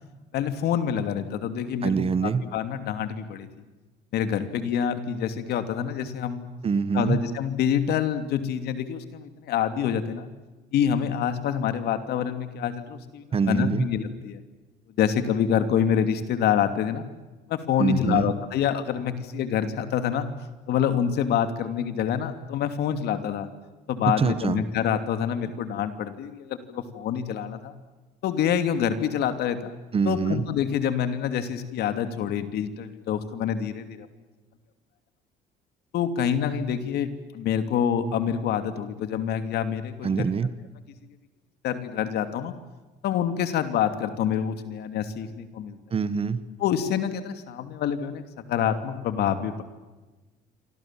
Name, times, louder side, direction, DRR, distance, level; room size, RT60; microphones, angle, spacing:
voice 1, 0.3-2.0 2.2-3.5 4.1-6.5 6.9-10.3 10.7-14.4 15.0-17.0 17.5-20.3 20.7-23.5 23.9-27.7 28.2-29.7 30.0-34.1 35.9-40.3 41.6-42.5 43.0-45.8 46.6-49.6, left 8 dB, 75° left, 9 dB, 2.8 m, -26 dB
voice 2, 1.8-2.4 6.6-7.2 13.3-13.9 17.8-18.3 24.0-24.6 29.9-30.4 40.0-40.5 45.9-46.4, right 5 dB, 35° right, 14 dB, 1.6 m, -24 dB
28.0 x 24.5 x 7.6 m, 1.2 s
cardioid pair, 110°, 17 cm